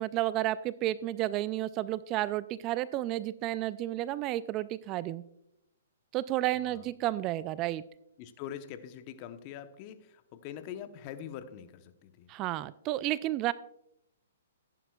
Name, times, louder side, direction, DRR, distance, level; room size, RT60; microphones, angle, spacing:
voice 1, 0.0-5.2 6.1-7.8 12.3-13.5, right 15 dB, 30° right, 17 dB, 0.3 m, -31 dB
voice 2, 6.5-6.9 8.2-12.3, left 9 dB, 35° left, 10 dB, 0.9 m, -44 dB
14.5 x 11.0 x 2.3 m, 0.79 s
hypercardioid pair, 135°, 0 cm